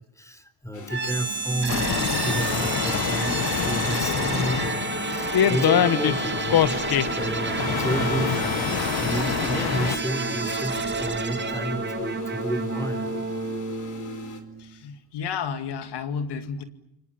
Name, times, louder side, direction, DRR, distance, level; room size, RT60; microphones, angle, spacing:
voice 1, 0.2-6.8 7.1-13.2, equal, 10° left, 11 dB, 3.7 m, -31 dB
sound 1, 0.7-14.4, left 4 dB, 50° left, 4.4 m, -40 dB
sound 2, 0.9-14.8, right 4 dB, 25° right, 2.2 m, -30 dB
sound 3, 1.7-10.0, left 9 dB, 65° left, 1.3 m, -25 dB
voice 2, 14.6-16.6, left 6 dB, 80° left, 10 dB, 2.4 m, -32 dB
29.5 x 25.5 x 7.1 m, 0.84 s
cardioid pair, 80°, 40 cm